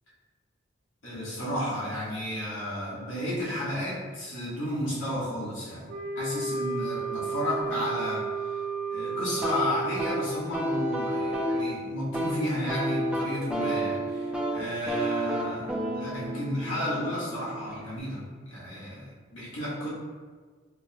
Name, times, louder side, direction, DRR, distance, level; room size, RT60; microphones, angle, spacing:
voice 1, 1.0-5.9 6.1-8.6 8.9-19.9, left 1 dB, 90° left, -8 dB, 1.1 m, -33 dB
Wind instrument woodwind instrument, 5.9-10.3, right 4 dB, 75° right, 0.9 m, -32 dB
sound 1, 9.4-18.0, right 1 dB, 5° right, 0.4 m, -31 dB
4.4 x 2.2 x 2.8 m, 1.5 s
head